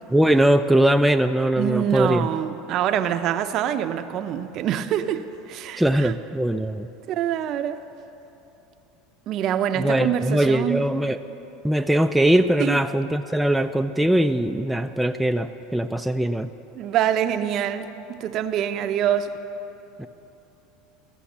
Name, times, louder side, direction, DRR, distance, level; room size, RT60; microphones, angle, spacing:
voice 1, 0.1-2.3 5.8-6.9 9.8-11.2 11.6-16.5 20.0-20.1, right 1 dB, 5° right, 6 dB, 0.3 m, -21 dB
voice 2, 1.6-6.1 7.1-7.8 9.3-10.9 12.6-12.8 16.7-19.3, right 10 dB, 50° right, 10 dB, 0.6 m, -25 dB
14.5 x 7.0 x 7.2 m, 3.0 s
supercardioid pair, 120°, 0 cm